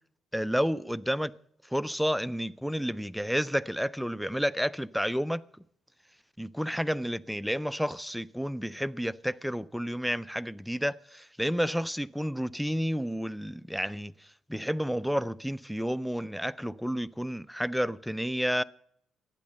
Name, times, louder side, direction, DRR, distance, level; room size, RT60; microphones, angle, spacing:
voice 1, 0.3-1.3 1.7-5.4 6.4-14.1 14.5-18.6, equal, ahead, 0.4 m, -30 dB
12.0 x 9.7 x 6.5 m
cardioid pair, 90°, 0 cm